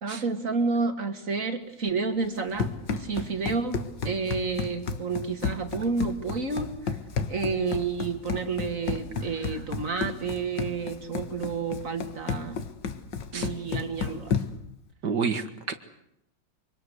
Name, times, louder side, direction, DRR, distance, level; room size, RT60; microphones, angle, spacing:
voice 1, 0.0-7.0 7.3-12.6 13.3-14.3, right 4 dB, 40° right, 7 dB, 2.5 m, -30 dB
Run, 2.2-14.7, left 5 dB, 60° left, 2.0 m, -33 dB
voice 2, 15.0-15.7, right 5 dB, 55° right, 9 dB, 2.2 m, -29 dB
24.5 x 24.0 x 8.0 m, 0.78 s
omnidirectional pair, 2.2 m